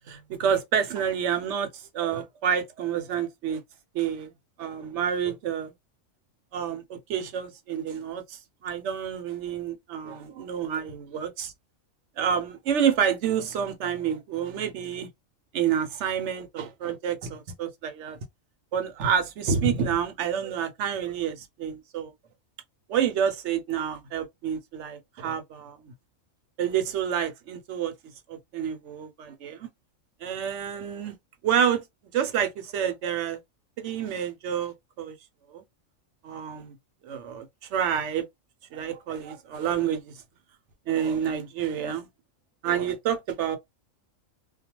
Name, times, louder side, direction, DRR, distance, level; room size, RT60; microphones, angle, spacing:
voice 1, 0.1-3.6 3.9-4.3 4.6-5.7 6.5-11.5 12.2-15.1 15.5-18.2 18.7-22.1 22.9-25.9 26.6-27.9 28.3-29.7 30.2-31.2 31.4-31.8 32.1-33.4 33.8-35.1 35.5-35.6 36.2-36.7 37.0-38.2 38.7-40.1 40.9-42.1 42.6-43.6, right 8 dB, 65° right, 0.9 m, -28 dB
2.3 x 2.2 x 2.9 m
omnidirectional pair, 1.4 m